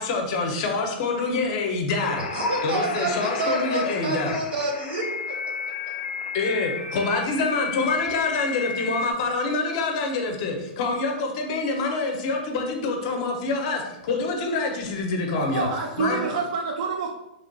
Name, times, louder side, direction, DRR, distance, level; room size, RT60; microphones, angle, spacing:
voice 1, 0.0-2.3 2.6-4.4 6.3-15.7 16.0-16.2, left 3 dB, 35° left, 3 dB, 0.5 m, -26 dB
sound 1, 2.0-9.1, left 5 dB, 90° left, 0.4 m, -33 dB
voice 2, 2.2-5.5, right 2 dB, 85° right, 1 dB, 1.1 m, -28 dB
voice 3, 15.3-17.1, right 5 dB, 45° right, 0 dB, 0.4 m, -27 dB
3.2 x 2.2 x 3.8 m, 0.89 s
supercardioid pair, 175°, 5 cm